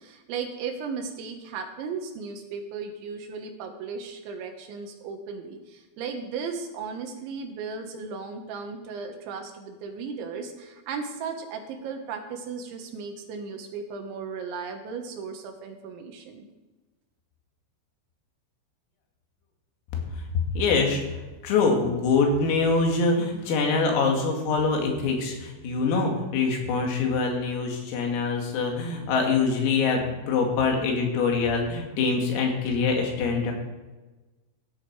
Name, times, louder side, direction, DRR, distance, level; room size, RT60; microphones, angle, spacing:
voice 1, 0.0-16.5, right 5 dB, 70° right, 4 dB, 3.2 m, -36 dB
voice 2, 20.5-21.0 21.4-33.5, left 4 dB, 80° left, 1 dB, 4.9 m, -24 dB
16.5 x 10.5 x 4.7 m, 1.2 s
omnidirectional pair, 6.0 m